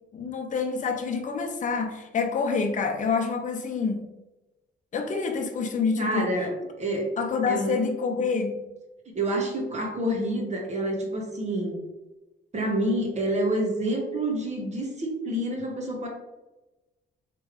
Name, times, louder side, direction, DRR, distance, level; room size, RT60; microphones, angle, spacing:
voice 1, 0.1-4.0 4.9-6.3 7.2-8.6, left 5 dB, 40° left, 4 dB, 0.7 m, -27 dB
voice 2, 6.0-6.5 6.8-7.1 7.5-7.8 9.1-11.8 12.5-16.1, right 1 dB, 35° right, 0 dB, 1.2 m, -28 dB
3.4 x 3.3 x 3.2 m, 1.0 s
cardioid pair, 90°, 20 cm